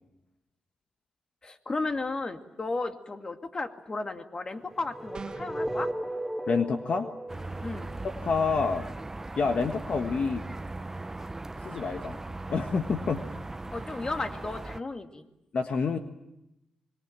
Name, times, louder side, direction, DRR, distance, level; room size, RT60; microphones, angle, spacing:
voice 1, 1.4-5.9 7.6-7.9 13.7-15.2, left 3 dB, 35° left, 6 dB, 2.3 m, -34 dB
sound 1, 4.7-8.8, right 1 dB, ahead, 3.2 m, -36 dB
sound 2, 5.1-5.7, right 5 dB, 40° right, 2.2 m, -41 dB
voice 2, 6.5-7.1 8.0-8.9 9.4-10.5 11.6-12.2 12.5-13.4 15.5-16.0, left 4 dB, 60° left, 6 dB, 1.5 m, -28 dB
sound 3, 7.3-14.8, right 2 dB, 20° right, 0.9 m, -38 dB
25.0 x 23.0 x 8.8 m, 0.90 s
cardioid pair, 75°, 2 cm